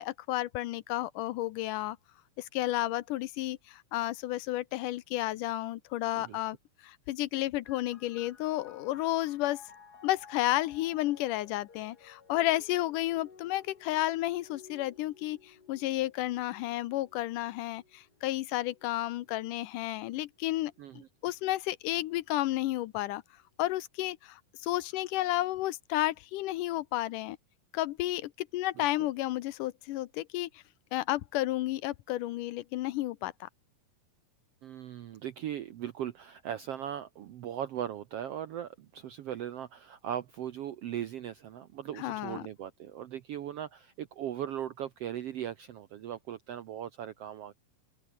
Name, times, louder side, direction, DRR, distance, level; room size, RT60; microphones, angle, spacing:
voice 1, 0.0-2.0 2.4-6.6 6.8-9.6 10.0-23.2 23.6-27.4 27.7-30.6 30.9-33.5 42.0-42.4, left 16 dB, 80° left, 2.2 m, -32 dB
sound 1, 7.6-20.9 21.7-22.5, left 5 dB, 30° left, 2.3 m, -57 dB
voice 2, 20.8-21.1 28.8-28.9 34.6-47.5, right 10 dB, 75° right, 1.4 m, -38 dB
open air
omnidirectional pair, 3.9 m